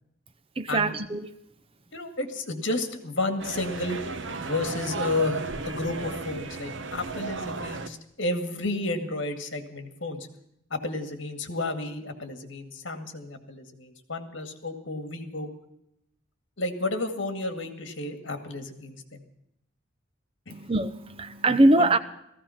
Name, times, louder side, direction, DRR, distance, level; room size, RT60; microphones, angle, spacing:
voice 1, 0.6-1.3 20.5-22.0, right 2 dB, 30° right, 12 dB, 0.7 m, -22 dB
voice 2, 1.9-4.0 4.5-10.2 10.7-15.5 16.6-19.2 20.5-20.7 21.8-21.9, left 2 dB, 65° left, 7 dB, 2.1 m, -32 dB
sound 1, 3.4-7.9, right 3 dB, 65° right, 1.0 m, -34 dB
16.5 x 15.0 x 5.8 m, 0.79 s
head